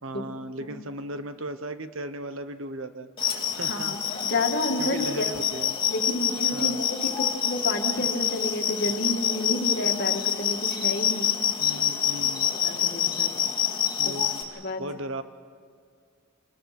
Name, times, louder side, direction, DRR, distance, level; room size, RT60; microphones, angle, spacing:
voice 1, 0.0-4.0 4.3-4.4 4.8-5.8 6.5-6.8 11.6-12.5 14.0-15.2, right 1 dB, 65° right, 10 dB, 1.0 m, -37 dB
sound 1, 3.2-14.4, left 9 dB, 25° left, 2.5 m, -27 dB
voice 2, 4.2-5.3 5.9-11.3 12.5-13.3 14.0-14.1 14.6-14.8, left 1 dB, 50° left, 3 dB, 2.1 m, -30 dB
27.5 x 20.5 x 6.0 m, 2.2 s
head